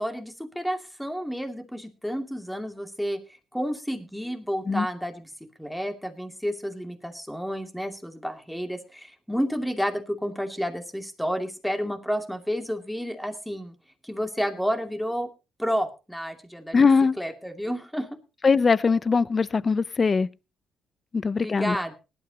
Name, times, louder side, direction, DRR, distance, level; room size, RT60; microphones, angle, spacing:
voice 1, 0.0-3.2 3.5-5.3 5.6-13.7 14.0-15.3 15.6-16.8 17.2-18.2 21.4-21.9, equal, ahead, 2.4 m, -30 dB
voice 2, 16.7-17.2 18.4-20.3 21.1-21.8, left 5 dB, 35° left, 0.6 m, -21 dB
19.0 x 12.0 x 2.9 m
cardioid pair, 90°, 0 cm